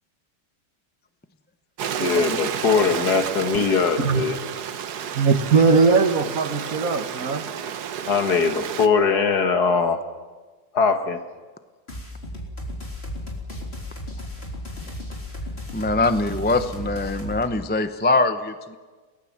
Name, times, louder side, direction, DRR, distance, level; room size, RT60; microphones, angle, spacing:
Stream, 1.8-8.9, right 8 dB, 80° right, 1.5 m, -31 dB
voice 1, 2.0-4.4 8.1-10.0 10.7-11.2, left 5 dB, 75° left, 7 dB, 2.2 m, -21 dB
voice 2, 5.1-7.4 7.7-7.8, right 4 dB, 60° right, 8 dB, 1.8 m, -20 dB
sound 1, 11.9-17.4, left 1 dB, 40° left, 4.0 m, -34 dB
voice 3, 15.7-18.8, left 2 dB, 10° left, 10 dB, 0.6 m, -23 dB
30.0 x 18.5 x 7.4 m, 1.4 s
omnidirectional pair, 1.7 m